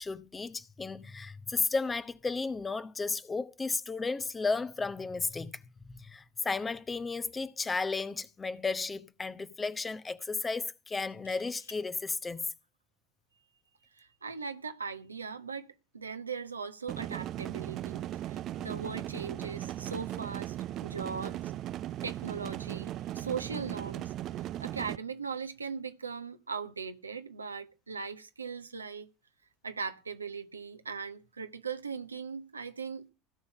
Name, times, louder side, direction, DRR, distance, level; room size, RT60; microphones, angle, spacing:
voice 1, 0.0-5.6 5.9-12.4, left 4 dB, 20° left, 1.1 m, -34 dB
sound 1, 8.4-8.5 8.7-8.8 11.0-11.8 13.6-13.9, left 6 dB, 80° left, 2.5 m, -53 dB
voice 2, 13.9-20.6 20.8-21.5 22.0-24.1 24.4-29.1 29.6-33.1, right 5 dB, 90° right, 1.2 m, -39 dB
sound 2, 16.9-25.0, right 13 dB, 45° right, 0.6 m, -37 dB
17.0 x 5.7 x 8.0 m
figure-of-eight pair, 75°, 0 cm